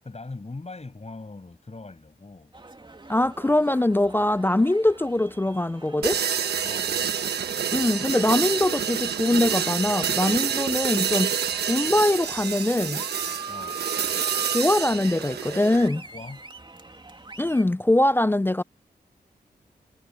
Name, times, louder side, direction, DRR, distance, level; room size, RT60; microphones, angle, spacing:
voice 1, 0.0-2.5 6.6-7.2 13.5-13.8 16.1-16.4 18.1-18.2, left 3 dB, 40° left, 8.0 m, -41 dB
sound 1, 2.5-17.6, right 3 dB, 30° right, 2.6 m, -43 dB
voice 2, 3.1-6.2 7.7-11.3 11.7-13.0 14.4-16.0 17.4-18.6, left 1 dB, 15° left, 0.4 m, -22 dB
sound 2, 6.0-15.9, right 8 dB, 85° right, 1.2 m, -28 dB
cardioid pair, 45°, 17 cm